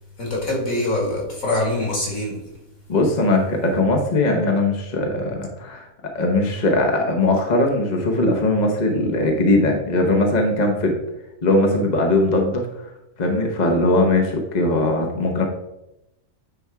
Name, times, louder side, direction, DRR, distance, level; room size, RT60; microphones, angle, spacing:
voice 1, 0.2-2.4, left 1 dB, 60° left, -2 dB, 2.6 m, -24 dB
voice 2, 2.9-5.9 6.1-11.0 11.4-12.7 13.2-15.4, left 2 dB, 35° left, 2 dB, 0.9 m, -20 dB
9.2 x 3.5 x 4.7 m, 0.89 s
omnidirectional pair, 1.6 m